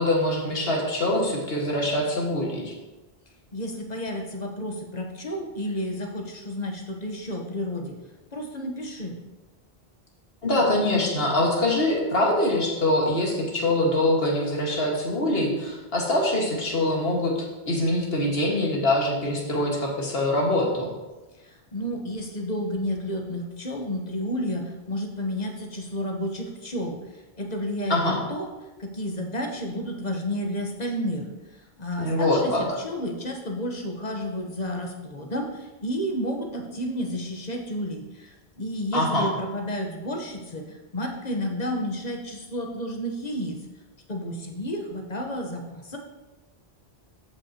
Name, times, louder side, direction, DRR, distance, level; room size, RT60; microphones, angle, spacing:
voice 1, 0.0-2.7 10.4-17.3 17.7-20.9 27.9-28.2 32.0-32.6 38.9-39.3, left 1 dB, 65° left, -2 dB, 1.9 m, -24 dB
voice 2, 3.5-7.9 8.3-9.1 21.3-43.6 44.1-46.0, equal, 40° left, 1 dB, 1.2 m, -31 dB
13.5 x 5.5 x 2.9 m, 1.1 s
omnidirectional pair, 1.1 m